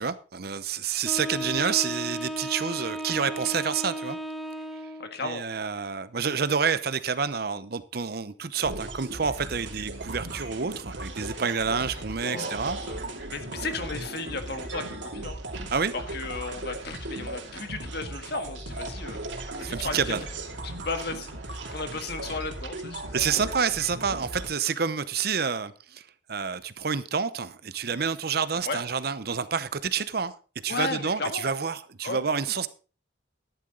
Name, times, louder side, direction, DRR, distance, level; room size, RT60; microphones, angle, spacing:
voice 1, 0.0-4.2 5.2-12.8 15.7-15.9 19.6-20.2 23.1-26.0 26.3-30.3 30.6-32.7, right 6 dB, 55° right, 0.8 m, -28 dB
Wind instrument woodwind instrument, 1.0-5.2, equal, ahead, 1.1 m, -34 dB
voice 2, 5.0-5.4 11.8-13.0 13.3-15.4 15.9-19.2 19.6-20.2 20.6-23.5 28.6-28.8 30.7-31.5 32.0-32.3, left 3 dB, 60° left, 1.6 m, -35 dB
sound 1, 8.6-24.5, right 2 dB, 80° right, 2.6 m, -37 dB
13.0 x 11.0 x 3.9 m
head